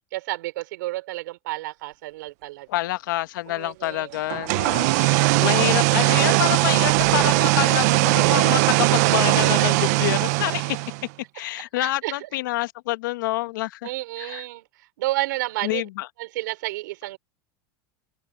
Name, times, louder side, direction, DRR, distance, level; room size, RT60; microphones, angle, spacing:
voice 1, 0.1-2.7 3.5-4.2 9.6-9.8 11.8-12.3 13.8-15.9 16.2-17.2, right 18 dB, 75° right, 4.8 m, -31 dB
voice 2, 2.7-10.8 11.3-13.9 14.2-14.4 15.6-16.1, left 17 dB, 80° left, 1.6 m, -27 dB
sound 1, 4.3-11.1, right 23 dB, 55° right, 0.5 m, -20 dB
open air
supercardioid pair, 160°, 10 cm